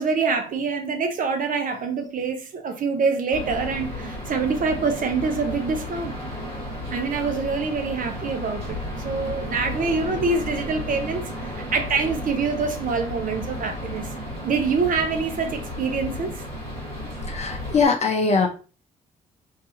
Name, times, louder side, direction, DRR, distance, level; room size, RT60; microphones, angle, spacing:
voice 1, 0.0-6.1 6.9-8.8 9.0-11.2 11.5-14.1 14.4-16.4, right 4 dB, 45° right, 0.6 m, -25 dB
sound 1, 3.3-17.9, left 1 dB, 85° right, 1.0 m, -33 dB
voice 2, 17.3-18.5, left 4 dB, 35° left, 0.7 m, -21 dB
2.6 x 2.4 x 2.8 m
figure-of-eight pair, 40°, 20 cm